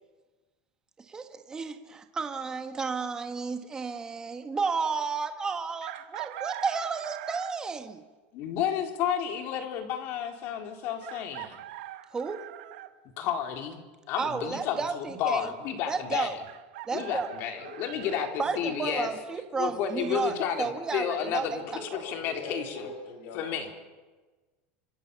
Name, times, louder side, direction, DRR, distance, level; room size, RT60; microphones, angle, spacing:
voice 1, 1.0-8.0 12.1-12.5 14.2-15.5 15.9-16.3 16.9-17.3 18.4-21.8, right 5 dB, 15° right, 7 dB, 1.4 m, -32 dB
Chicken rooster, 5.8-7.7 9.4-9.5 11.0-12.9 16.4-18.3, right 14 dB, 75° right, 1.7 m, -42 dB
voice 2, 8.3-11.6 13.2-13.8 14.1-16.3 16.9-19.1 19.6-22.9 23.3-23.7, left 8 dB, 40° left, 5 dB, 3.9 m, -31 dB
voice 3, 17.4-18.4 18.7-19.1 21.6-23.7, left 2 dB, 70° left, 0 dB, 7.8 m, -42 dB
28.5 x 27.0 x 7.0 m, 1.3 s
supercardioid pair, 170°, 5 cm